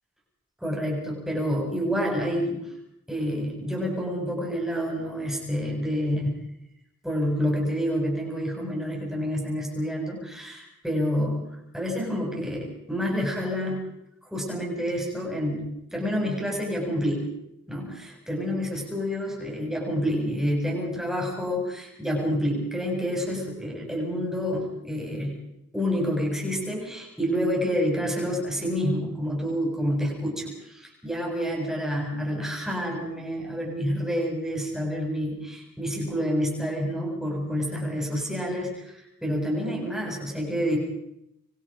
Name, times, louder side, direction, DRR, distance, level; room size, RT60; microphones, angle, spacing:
voice 1, 0.6-2.7 3.1-6.4 7.0-11.4 11.7-13.8 14.3-15.7 15.9-17.3 17.7-25.3 25.7-40.8, equal, ahead, -1 dB, 7.6 m, -28 dB
27.5 x 24.0 x 5.3 m, 0.82 s
head